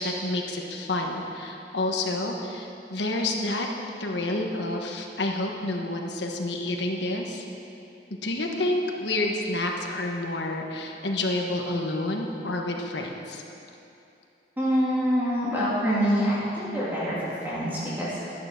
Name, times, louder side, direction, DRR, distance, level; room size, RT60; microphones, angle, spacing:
voice 1, 0.0-3.7 4.0-7.4 8.2-13.4, left 2 dB, 85° left, 1 dB, 1.5 m, -29 dB
voice 2, 14.6-17.2 17.4-18.2, equal, 10° right, -10 dB, 2.8 m, -25 dB
12.0 x 10.5 x 6.0 m, 2.7 s
head